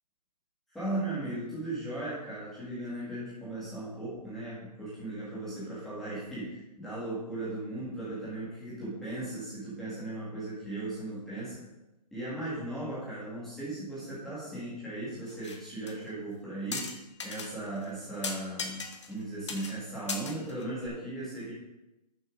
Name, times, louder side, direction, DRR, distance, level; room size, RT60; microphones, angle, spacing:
voice 1, 0.7-11.6 12.1-16.9 17.2-21.5, right 2 dB, ahead, -11 dB, 1.7 m, -37 dB
sound 1, 15.3-15.6 15.9-16.0 16.7-17.5 17.8-17.9 18.2-19.2 19.5-19.8 20.1-20.9, left 4 dB, 45° left, 1.1 m, -37 dB
11.5 x 6.7 x 3.7 m, 0.98 s
hypercardioid pair, 175°, 21 cm